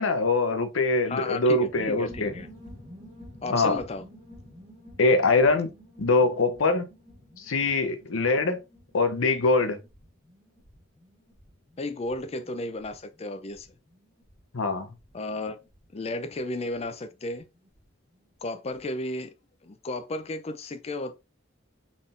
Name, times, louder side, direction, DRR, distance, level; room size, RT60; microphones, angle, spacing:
voice 1, 0.0-2.3 3.5-3.8 5.0-5.7 6.0-6.9 7.4-8.6 8.9-9.8 14.5-14.9, left 3 dB, 80° left, 0.7 m, -23 dB
voice 2, 1.1-2.5 3.4-4.0 11.8-13.7 15.1-15.6 15.9-17.4 18.4-19.3 19.6-21.1, left 2 dB, 30° left, 0.4 m, -33 dB
sound 1, 1.6-17.9 18.1-18.2 18.4-18.8, left 1 dB, 20° right, 1.7 m, -50 dB
4.0 x 3.6 x 2.5 m
head